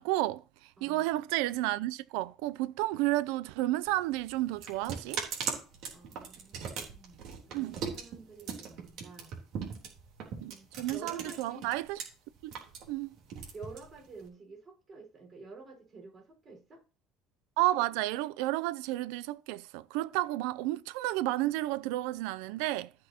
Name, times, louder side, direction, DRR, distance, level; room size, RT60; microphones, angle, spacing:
voice 1, 0.0-5.2 7.5-7.8 10.4-12.0 12.4-12.5 12.9-13.2 17.6-22.9, right 17 dB, 90° right, 0.4 m, -31 dB
sound 1, 3.9-12.0 12.4-14.3, right 6 dB, 65° right, 3.4 m, -39 dB
voice 2, 5.9-9.3 10.5-11.7 13.5-16.8, right 3 dB, 35° right, 4.9 m, -50 dB
14.5 x 6.2 x 2.9 m
cardioid pair, 130°, 0 cm